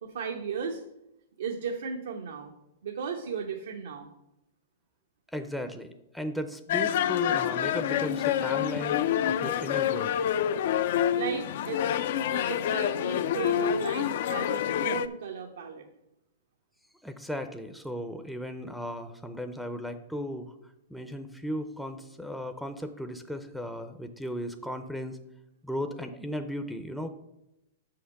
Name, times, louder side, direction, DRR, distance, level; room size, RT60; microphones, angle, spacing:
voice 1, 0.0-0.8 1.4-2.5 2.8-4.1 11.2-12.0 12.3-15.9, right 6 dB, 80° right, 2 dB, 0.9 m, -35 dB
voice 2, 5.3-9.0 9.2-10.1 17.0-20.5 20.9-25.2 25.6-27.1, equal, ahead, 6 dB, 0.5 m, -36 dB
sound 1, 6.7-15.1, left 10 dB, 60° left, 0.4 m, -27 dB
6.0 x 5.8 x 6.5 m, 0.87 s
hypercardioid pair, 135°, 0 cm